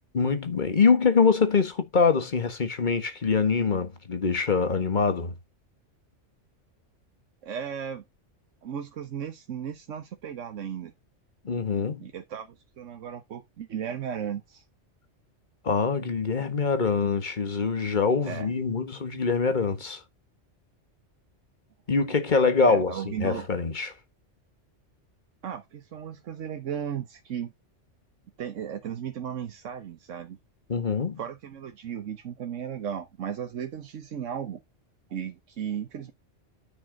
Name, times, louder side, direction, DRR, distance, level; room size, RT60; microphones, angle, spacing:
voice 1, 0.1-5.3 11.4-12.1 15.6-20.0 21.9-23.9 30.7-31.2, left 5 dB, 40° left, 1.5 m, -24 dB
voice 2, 7.4-8.0 8.6-10.9 12.0-14.6 18.2-18.5 22.7-23.5 25.4-27.5 28.4-30.4 31.2-34.6 35.1-36.1, right 8 dB, 90° right, 1.3 m, -35 dB
9.4 x 6.1 x 3.9 m
omnidirectional pair, 1.2 m